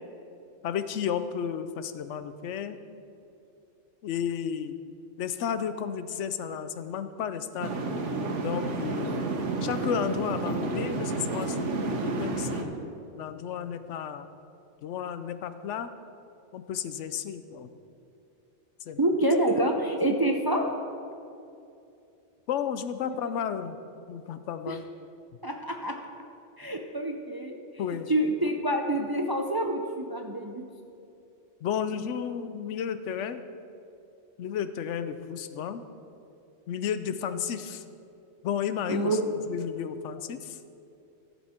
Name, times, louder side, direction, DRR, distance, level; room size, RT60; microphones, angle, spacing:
voice 1, 0.6-2.8 4.0-4.8 5.2-7.7 8.4-9.3 9.6-12.7 13.2-14.3 14.8-15.9 16.5-17.7 18.9-19.0 22.5-23.8 24.1-24.8 27.8-28.1 31.6-33.4 34.4-35.9 36.7-37.8 38.4-39.2 39.5-40.6, left 8 dB, 80° left, 11 dB, 0.9 m, -32 dB
sound 1, 7.6-12.6, right 3 dB, 90° right, 1.3 m, -30 dB
voice 2, 19.0-20.7 23.0-23.2 24.7-24.8 25.4-26.0 26.6-27.5 28.1-30.6 38.9-39.3, right 1 dB, 30° right, 3 dB, 0.4 m, -27 dB
14.5 x 7.3 x 4.3 m, 2.7 s
omnidirectional pair, 1.2 m